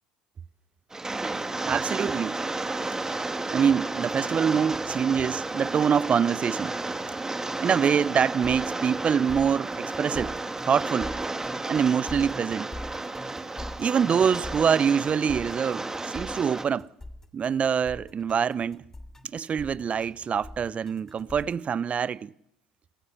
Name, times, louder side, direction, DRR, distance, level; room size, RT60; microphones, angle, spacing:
Rain, 0.9-16.6, right 2 dB, 15° right, 2.3 m, -32 dB
voice 1, 1.6-2.4 3.5-6.8 7.6-10.4 10.6-11.2 11.7-12.7 13.8-16.9 17.3-18.8 19.2-22.3, right 7 dB, 35° right, 0.8 m, -25 dB
sound 1, 8.0-21.6, left 1 dB, 10° left, 2.8 m, -43 dB
28.0 x 15.0 x 8.2 m
hypercardioid pair, 70°, 4 cm